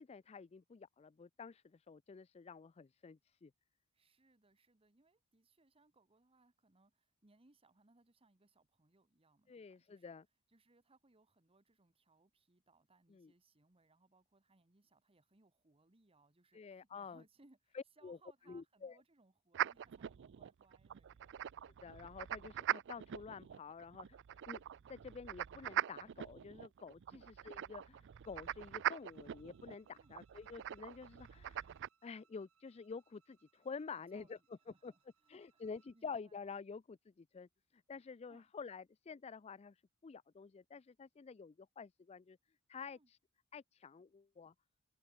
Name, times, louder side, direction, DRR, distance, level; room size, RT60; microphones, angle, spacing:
voice 1, 0.0-3.5 9.5-10.3 13.1-13.3 16.5-17.2 17.7-18.2 18.5-19.0 21.8-24.2 24.5-24.6 24.9-31.7 32.0-34.4 34.8-34.9 35.3-42.4 42.7-43.2 43.5-44.5, left 5 dB, 30° left, 0.4 m, -49 dB
voice 2, 3.9-10.2 10.5-21.4 27.1-27.3 29.9-30.2 34.1-35.7 35.9-36.4 38.3-38.5 42.9-43.1, right 2 dB, 25° right, 1.2 m, -71 dB
sound 1, 19.5-31.9, right 11 dB, 55° right, 0.4 m, -43 dB
Bowed string instrument, 28.2-36.0, right 7 dB, 80° right, 6.2 m, -77 dB
head